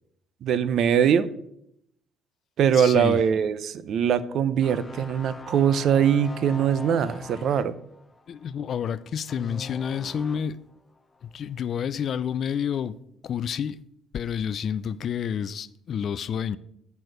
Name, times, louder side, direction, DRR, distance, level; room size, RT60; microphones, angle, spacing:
voice 1, 0.4-1.3 2.6-7.7, right 8 dB, 55° right, 0.5 m, -22 dB
voice 2, 2.7-3.2 8.3-10.6 11.2-13.0 13.2-13.8 14.1-16.6, left 8 dB, 45° left, 0.3 m, -29 dB
sound 1, 4.6-10.6 11.0-11.2, left 2 dB, 15° left, 0.7 m, -42 dB
8.2 x 4.5 x 6.2 m
cardioid pair, 135°, 0 cm